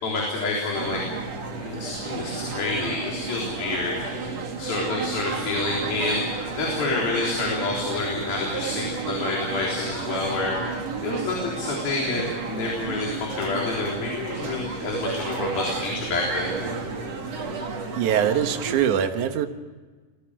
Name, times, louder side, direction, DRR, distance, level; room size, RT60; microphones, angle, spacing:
voice 1, 0.0-1.0 1.5-10.5 11.0-16.5, left 3 dB, 65° left, -2 dB, 5.6 m, -28 dB
sound 1, 0.7-18.8, right 4 dB, 45° right, 3.4 m, -32 dB
voice 2, 18.0-19.5, right 9 dB, 60° right, 7 dB, 2.5 m, -22 dB
29.0 x 22.0 x 5.0 m, 1.3 s
omnidirectional pair, 4.5 m